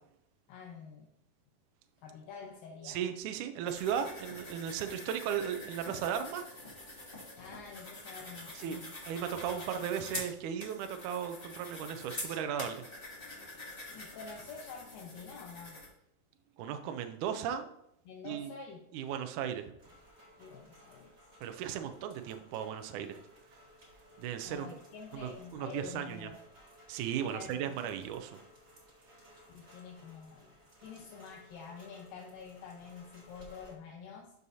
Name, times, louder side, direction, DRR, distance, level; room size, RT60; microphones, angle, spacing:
voice 1, 0.5-1.1 2.0-3.0 7.4-8.9 9.3-9.4 13.9-15.8 18.1-18.8 20.4-21.1 24.5-26.4 27.2-27.7 29.5-30.5 30.8-34.3, left 5 dB, 75° left, 0 dB, 2.6 m, -48 dB
voice 2, 2.8-6.5 8.5-12.8 16.6-17.6 18.2-18.5 18.9-19.7 21.4-23.2 24.2-24.7 25.1-26.3 26.9-28.4, right 9 dB, 80° right, 7 dB, 1.8 m, -36 dB
sound 1, 3.7-15.9, left 1 dB, 20° left, 1.9 m, -46 dB
Rain, 19.8-33.7, equal, 25° right, 1.7 m, -59 dB
12.5 x 6.3 x 2.7 m, 0.77 s
omnidirectional pair, 4.2 m